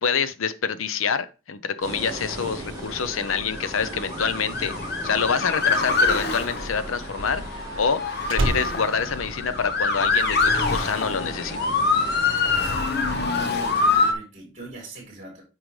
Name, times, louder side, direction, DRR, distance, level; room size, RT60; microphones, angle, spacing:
voice 1, 0.0-4.7 5.0-8.0 8.3-11.6, left 6 dB, 80° left, 0.7 m, -26 dB
sound 1, 1.8-13.8, right 1 dB, 20° right, 2.1 m, -39 dB
Motor vehicle (road) / Siren, 3.0-14.1, left 3 dB, 50° left, 0.9 m, -25 dB
Slam, 5.3-10.1 10.4-10.8, right 1 dB, 75° right, 0.9 m, -31 dB
voice 2, 12.4-15.4, right 1 dB, 35° right, 3.4 m, -40 dB
9.0 x 5.0 x 3.2 m
head